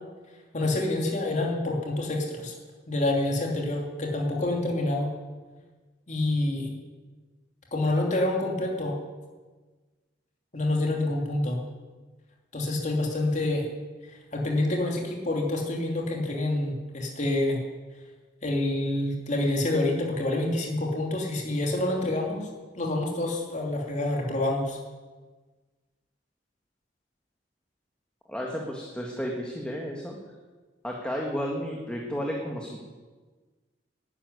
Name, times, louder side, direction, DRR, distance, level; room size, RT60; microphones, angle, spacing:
voice 1, 0.5-2.5 2.9-5.1 6.1-6.7 7.7-9.0 10.5-11.6 12.5-13.6 14.1-17.6 18.4-22.5 22.7-24.8, left 1 dB, 40° left, -1 dB, 3.0 m, -27 dB
voice 2, 28.3-30.1 30.8-32.8, equal, 5° left, -1 dB, 1.7 m, -32 dB
11.5 x 11.5 x 9.7 m, 1.3 s
head